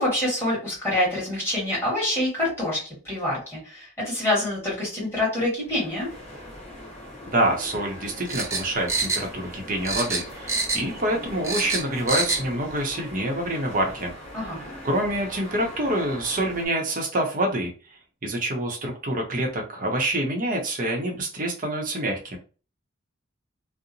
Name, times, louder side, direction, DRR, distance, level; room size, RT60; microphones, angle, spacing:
voice 1, 0.0-6.1 14.3-14.6, left 1 dB, 10° left, -7 dB, 1.5 m, -26 dB
sound 1, 5.5-16.7, left 1 dB, 30° left, 1.2 m, -41 dB
voice 2, 7.3-14.1 14.5-17.7 18.2-22.4, right 1 dB, 40° right, 1 dB, 0.7 m, -26 dB
sound 2, 8.3-9.6 9.8-11.0 11.3-12.5 12.8-12.9, right 3 dB, 15° right, 0.3 m, -27 dB
2.8 x 2.0 x 2.6 m, 0.36 s
head